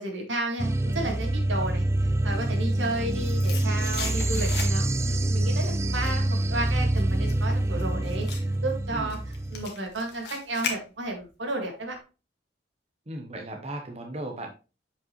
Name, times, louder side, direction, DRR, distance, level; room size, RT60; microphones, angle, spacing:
voice 1, 0.0-1.9 2.2-8.3 8.6-9.2 9.5-12.0, right 2 dB, 85° right, 2 dB, 2.1 m, -32 dB
sound 1, 0.6-9.7, right 1 dB, 15° right, 0.3 m, -26 dB
sound 2, 2.7-5.1 5.4-11.3 11.6-11.7, left 6 dB, 60° left, 1.5 m, -39 dB
voice 2, 7.7-8.3 8.9-9.2 13.1-14.5, right 1 dB, 35° right, 2 dB, 1.0 m, -37 dB
7.4 x 5.4 x 3.1 m, 0.31 s
head